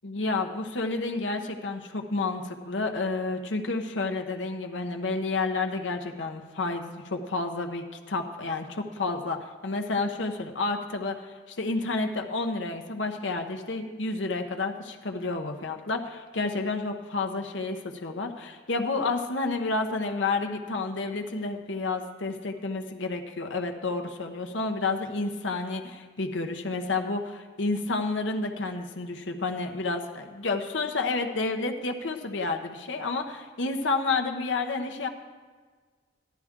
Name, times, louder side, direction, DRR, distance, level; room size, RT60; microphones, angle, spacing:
voice 1, 0.0-35.1, left 3 dB, 80° left, 4 dB, 1.0 m, -30 dB
14.0 x 11.5 x 3.7 m, 1.5 s
head